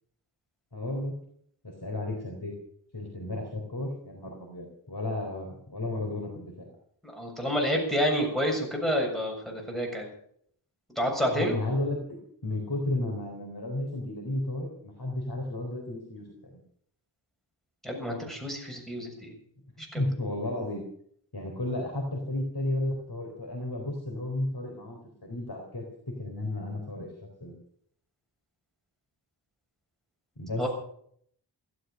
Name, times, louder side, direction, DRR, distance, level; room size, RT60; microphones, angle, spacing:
voice 1, 0.7-1.2 1.6-2.5 2.9-6.7 11.1-16.5 19.8-20.8 21.3-27.1 27.4-27.5 30.4-30.7, left 1 dB, 55° left, 0 dB, 3.9 m, -33 dB
voice 2, 7.1-10.1 11.0-11.6 17.8-19.3 19.9-20.0 30.6-30.7, equal, ahead, 0 dB, 6.9 m, -28 dB
15.5 x 13.0 x 6.5 m, 0.65 s
wide cardioid pair, 40°, 46 cm